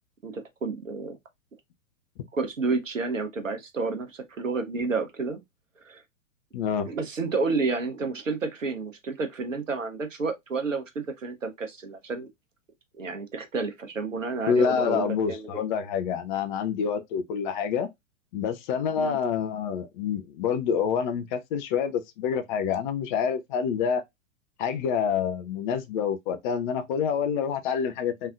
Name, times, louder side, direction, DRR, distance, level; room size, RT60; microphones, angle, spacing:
voice 1, 0.2-1.2 2.3-5.4 5.8-6.0 6.9-12.3 13.0-15.6 19.0-19.2, right 4 dB, 80° right, 1.0 m, -30 dB
voice 2, 6.5-6.9 14.5-17.9 18.3-24.0 24.6-28.3, left 7 dB, 40° left, 0.6 m, -27 dB
3.5 x 3.2 x 2.4 m
figure-of-eight pair, 100°, 38 cm